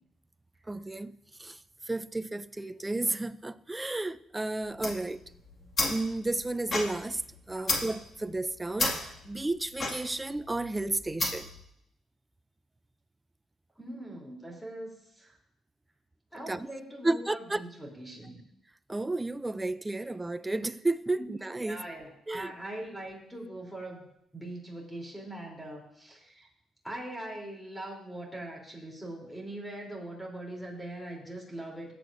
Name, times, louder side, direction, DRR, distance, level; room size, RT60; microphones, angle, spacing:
voice 1, 0.7-1.1 1.4-1.6 1.9-5.2 5.9-7.2 7.5-11.5 16.5-16.7 17.0-17.6 18.9-21.8 22.3-22.5, right 2 dB, 15° right, 0.4 m, -32 dB
sound 1, 4.6-11.6, left 2 dB, 40° left, 2.0 m, -34 dB
voice 2, 13.8-15.4 16.3-18.4 21.2-21.3 21.6-24.1 24.3-26.5 26.8-31.9, right 1 dB, 5° left, 3.2 m, -41 dB
18.0 x 7.9 x 2.6 m
cardioid pair, 90°, 0 cm